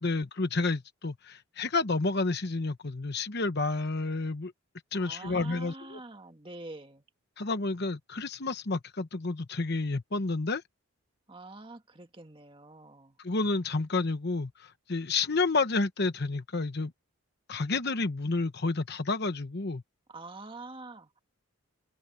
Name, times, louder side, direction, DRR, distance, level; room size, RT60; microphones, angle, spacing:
voice 1, 0.0-4.5 4.9-6.0 7.4-10.6 13.2-16.9 17.5-19.8, left 3 dB, 50° left, 1.0 m, -30 dB
voice 2, 4.9-7.0 11.3-13.2 20.1-21.1, right 2 dB, 25° right, 1.8 m, -45 dB
head